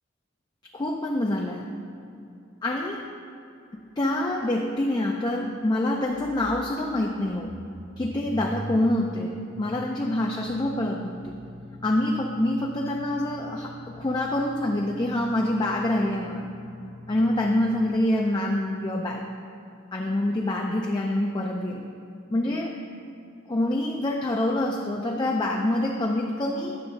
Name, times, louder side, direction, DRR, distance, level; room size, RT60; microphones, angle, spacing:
voice 1, 0.7-1.7 2.6-3.1 3.7-7.6 8.0-11.4 11.8-16.6 17.1-19.3 19.9-21.9 22.3-22.8 23.5-26.8, left 1 dB, 20° left, 0 dB, 0.4 m, -26 dB
sound 1, 4.0-4.1 4.3-4.4 5.9-17.9, left 1 dB, 60° left, 1.1 m, -44 dB
9.9 x 3.5 x 6.3 m, 2.6 s
head